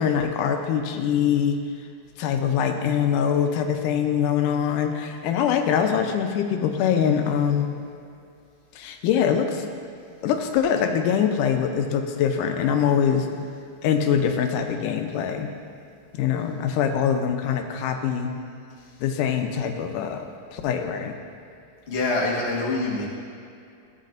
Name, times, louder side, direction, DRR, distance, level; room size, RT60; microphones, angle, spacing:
voice 1, 0.0-1.6 2.2-7.8 8.8-9.6 10.2-13.3 13.8-15.5 16.1-18.4 19.0-20.3 20.5-21.2, left 8 dB, 90° left, 5 dB, 2.2 m, -23 dB
voice 2, 21.9-23.1, left 2 dB, 75° left, -5 dB, 0.5 m, -25 dB
14.5 x 7.4 x 2.6 m, 2.4 s
omnidirectional pair, 3.7 m